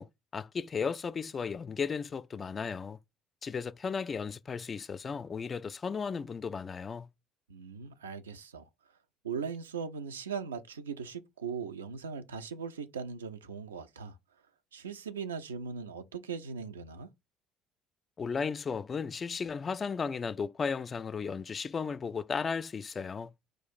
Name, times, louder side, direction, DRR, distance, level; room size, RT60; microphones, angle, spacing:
voice 1, 0.0-3.0 3.4-7.1 18.2-23.3, left 5 dB, 35° left, 0.3 m, -35 dB
voice 2, 7.5-8.7 9.2-14.2 14.7-17.1, right 6 dB, 85° right, 0.4 m, -39 dB
4.6 x 2.4 x 4.1 m
figure-of-eight pair, 55°, 0 cm